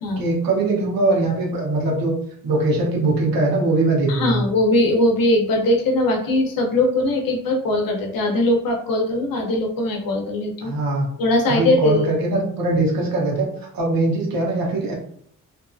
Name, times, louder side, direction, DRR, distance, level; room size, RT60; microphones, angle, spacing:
voice 1, 0.2-2.1 2.4-4.4 10.6-11.1 11.5-13.5 13.7-14.9, right 2 dB, 85° right, -1 dB, 0.9 m, -21 dB
voice 2, 4.1-10.7 11.2-12.1, left 1 dB, 80° left, 3 dB, 0.7 m, -20 dB
2.7 x 2.5 x 2.3 m, 0.67 s
wide cardioid pair, 165°, 34 cm